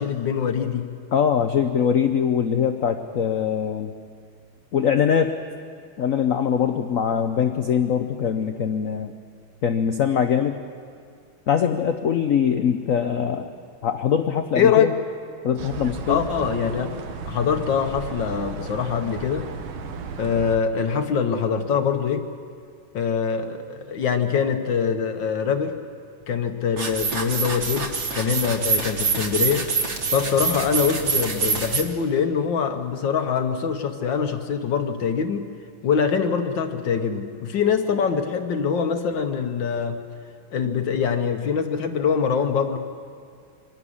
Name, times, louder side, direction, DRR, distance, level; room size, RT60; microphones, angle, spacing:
voice 1, 0.0-1.0 14.5-14.9 16.1-17.0 17.3-19.5 20.2-22.3 22.9-25.8 26.3-29.7 30.1-35.5 35.8-40.0 40.5-42.8, left 6 dB, 60° left, 7 dB, 1.6 m, -24 dB
voice 2, 1.1-3.9 4.7-5.4 6.0-9.1 9.6-10.6 11.5-13.5 13.8-14.9 15.4-16.3, left 8 dB, 85° left, 7 dB, 0.7 m, -22 dB
sound 1, 15.6-20.6, right 5 dB, 70° right, 1.8 m, -35 dB
sound 2, 26.8-31.8, right 5 dB, 35° right, 1.4 m, -25 dB
24.5 x 11.5 x 9.8 m, 2.2 s
omnidirectional pair, 2.4 m